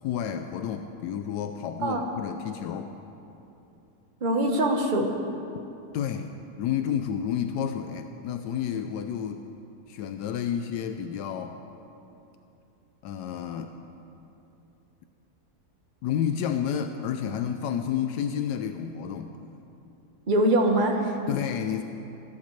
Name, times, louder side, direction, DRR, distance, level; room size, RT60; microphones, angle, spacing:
voice 1, 0.0-2.9 5.9-9.5 9.9-11.6 13.0-13.7 16.0-19.4 21.3-21.8, left 8 dB, 85° left, 7 dB, 1.2 m, -30 dB
voice 2, 4.2-5.1 20.3-21.1, right 1 dB, 35° right, 3 dB, 1.2 m, -23 dB
22.5 x 12.5 x 3.2 m, 2.8 s
omnidirectional pair, 1.7 m